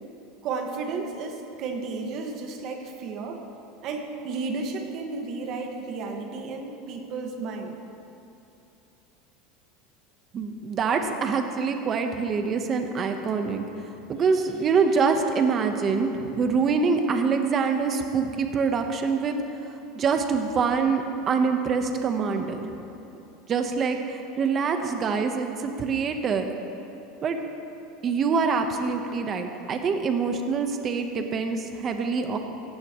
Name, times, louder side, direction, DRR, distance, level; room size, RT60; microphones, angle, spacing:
voice 1, 0.4-3.4 3.8-7.8, right 4 dB, 50° right, 3 dB, 1.8 m, -33 dB
voice 2, 10.3-13.6 14.1-19.4 19.9-22.6 23.5-26.5 27.2-27.4 28.0-32.4, right 5 dB, 30° right, 5 dB, 1.1 m, -25 dB
17.5 x 15.5 x 3.2 m, 2.9 s
supercardioid pair, 135°, 0 cm